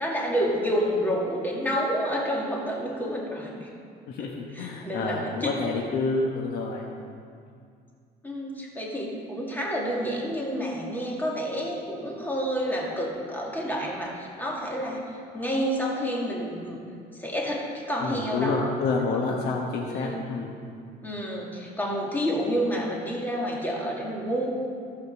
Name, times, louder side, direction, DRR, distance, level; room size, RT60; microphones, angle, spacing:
voice 1, 0.0-3.7 4.2-5.8 8.2-16.8 17.1-18.7 19.7-20.2 21.0-24.5, equal, 10° left, -3 dB, 2.3 m, -29 dB
voice 2, 4.1-6.9 18.0-20.5, left 4 dB, 75° left, 0 dB, 1.1 m, -28 dB
14.0 x 5.2 x 6.6 m, 2.3 s
cardioid pair, 110°, 17 cm